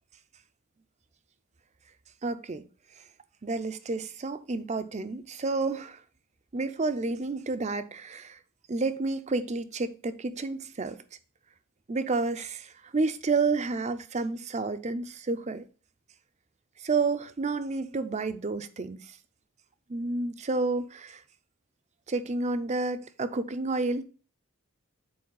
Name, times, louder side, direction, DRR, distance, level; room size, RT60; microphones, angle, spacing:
voice 1, 2.2-2.6 3.4-6.0 6.5-8.4 8.7-11.0 11.9-15.6 16.8-19.2 19.9-21.2 22.1-24.0, right 3 dB, 35° right, 0.5 m, -30 dB
7.7 x 4.5 x 3.9 m
head